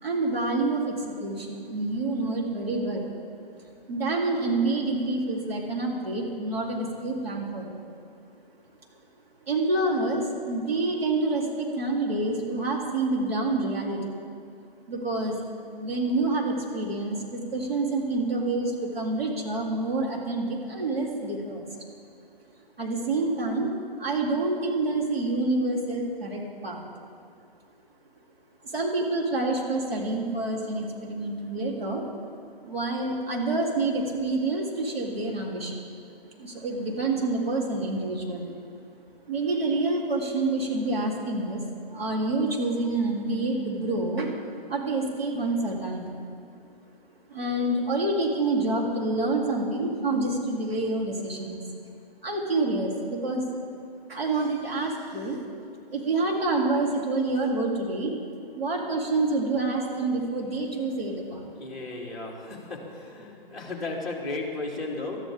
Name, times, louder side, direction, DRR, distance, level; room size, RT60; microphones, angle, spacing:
voice 1, 0.0-3.1 3.9-7.8 9.5-14.1 14.9-15.4 15.7-21.7 22.8-26.8 28.6-32.0 32.6-35.8 36.4-38.6 39.3-41.6 41.9-44.3 44.7-46.2 47.3-51.6 52.2-53.4 54.1-55.4 55.9-58.1 58.5-61.5, right 2 dB, 75° right, -2 dB, 3.6 m, -27 dB
voice 2, 61.6-65.2, left 2 dB, ahead, -6 dB, 2.3 m, -34 dB
21.0 x 13.0 x 3.7 m, 2.4 s
hypercardioid pair, 155°, 30 cm